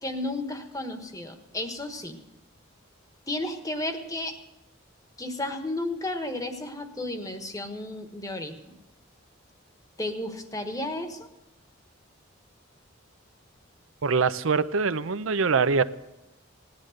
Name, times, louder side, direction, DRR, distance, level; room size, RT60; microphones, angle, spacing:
voice 1, 0.0-2.2 3.3-4.4 5.2-8.8 10.0-11.3, left 1 dB, 15° left, 6 dB, 1.3 m, -33 dB
voice 2, 14.0-15.8, right 5 dB, 80° right, 14 dB, 0.7 m, -23 dB
17.5 x 10.5 x 6.4 m, 0.96 s
head